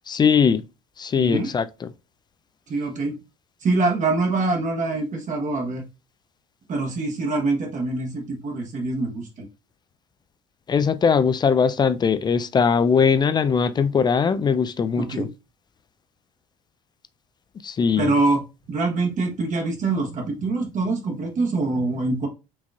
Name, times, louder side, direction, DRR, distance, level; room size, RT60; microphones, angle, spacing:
voice 1, 0.1-0.6 1.0-1.6 10.7-15.3 17.6-18.1, left 6 dB, 20° left, 0.3 m, -20 dB
voice 2, 1.2-1.5 2.7-3.2 3.6-5.8 6.7-9.5 15.0-15.3 18.0-18.4 18.7-22.3, right 3 dB, 40° right, 1.0 m, -24 dB
4.5 x 2.9 x 2.3 m
hypercardioid pair, 65°, 19 cm